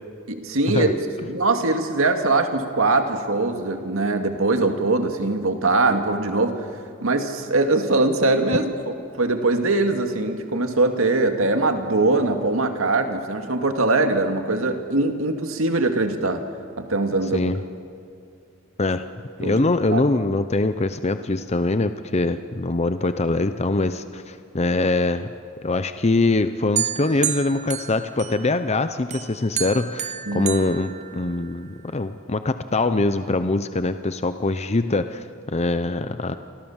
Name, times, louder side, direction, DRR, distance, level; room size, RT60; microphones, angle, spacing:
voice 1, 0.3-0.9 1.3-6.7 7.0-8.7 9.2-16.4 16.8-17.4 19.4-19.6 19.9-20.0 30.3-30.5, right 2 dB, 75° right, 6 dB, 2.2 m, -22 dB
voice 2, 17.3-17.6 18.8-19.1 19.4-25.3 25.6-36.3, left 2 dB, 30° left, 10 dB, 0.7 m, -23 dB
sound 1, 26.8-28.7 29.1-31.6, right 9 dB, 35° right, 1.0 m, -30 dB
29.5 x 25.5 x 7.3 m, 2.4 s
head